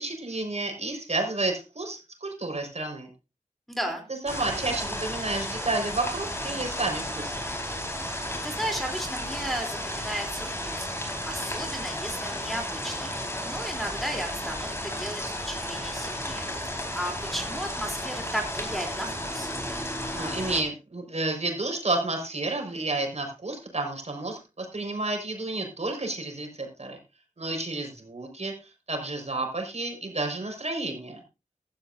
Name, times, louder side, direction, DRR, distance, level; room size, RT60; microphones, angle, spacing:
voice 1, 0.0-3.1 4.2-7.5 20.1-27.0 27.4-31.2, right 2 dB, 55° right, 3 dB, 5.0 m, -31 dB
voice 2, 3.7-4.0 8.4-10.9 11.2-19.5, equal, ahead, 1 dB, 3.4 m, -35 dB
sound 1, 4.3-20.6, left 1 dB, 20° left, 4.6 m, -33 dB
15.5 x 13.0 x 2.7 m, 0.29 s
wide cardioid pair, 65°, 14 cm